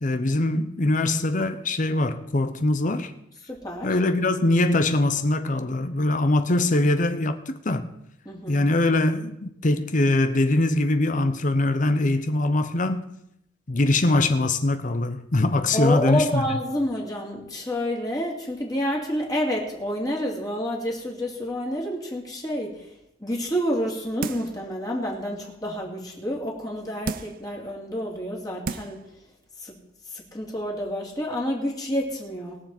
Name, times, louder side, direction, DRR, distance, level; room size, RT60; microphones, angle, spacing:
voice 1, 0.0-3.1 3.8-7.9 8.5-13.0 13.7-16.4, left 2 dB, 45° left, 0.8 m, -22 dB
voice 2, 3.5-4.0 8.2-8.6 15.7-22.9 23.2-29.0 29.6-29.8 30.1-32.6, equal, 20° left, 2.6 m, -29 dB
sound 1, 24.2-24.6 25.1-25.2 27.0-27.5 28.2-28.3 28.6-29.1 29.4-29.5, right 4 dB, 50° right, 0.5 m, -33 dB
21.5 x 7.3 x 4.4 m
head